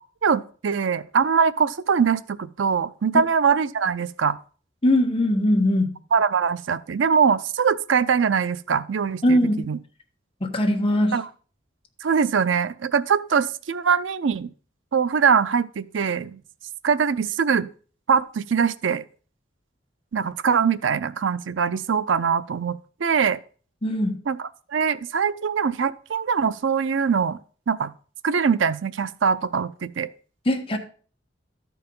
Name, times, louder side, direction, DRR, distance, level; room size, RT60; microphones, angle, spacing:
voice 1, 0.2-4.4 6.1-9.4 9.6-9.8 11.1-11.2 12.0-14.5 14.9-16.4 16.8-17.7 18.1-19.0 20.1-23.4 24.3-24.4 24.7-27.4 27.7-27.9 28.2-30.1, right 6 dB, 90° right, 0.5 m, -22 dB
voice 2, 4.8-5.9 9.2-9.6 10.4-11.2 23.8-24.2 30.4-30.8, left 1 dB, 30° left, 1.4 m, -20 dB
13.0 x 4.6 x 5.4 m
head